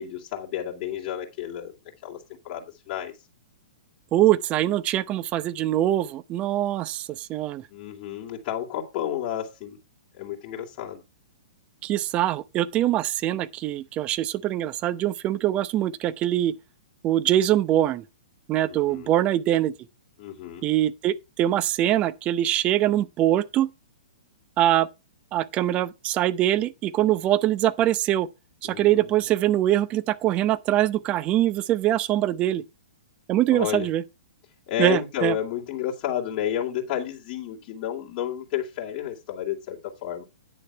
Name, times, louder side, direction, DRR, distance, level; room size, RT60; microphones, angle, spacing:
voice 1, 0.0-1.7 2.0-2.2 2.4-3.1 7.7-9.8 10.2-11.0 18.6-19.1 20.2-20.7 28.6-29.1 33.5-33.9 34.7-40.2, left 10 dB, 35° left, 2.7 m, -31 dB
voice 2, 4.1-7.7 11.8-16.5 17.0-18.0 18.5-19.7 20.6-23.7 24.6-24.9 25.3-28.3 28.6-32.6 33.3-34.0 34.8-35.3, right 13 dB, 30° right, 0.8 m, -23 dB
10.0 x 6.7 x 4.6 m
figure-of-eight pair, 115°, 4 cm